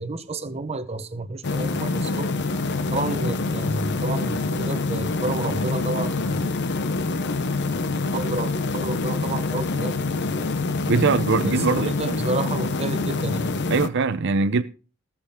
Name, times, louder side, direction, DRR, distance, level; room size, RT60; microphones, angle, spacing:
voice 1, 0.0-2.5 2.9-6.5 8.1-10.0 11.4-13.5, right 2 dB, 30° right, 0.9 m, -30 dB
sound 1, 1.4-13.9, left 3 dB, 50° left, 0.7 m, -26 dB
voice 2, 10.9-12.2 13.7-14.6, right 4 dB, 55° right, 0.6 m, -22 dB
18.0 x 7.4 x 3.6 m
head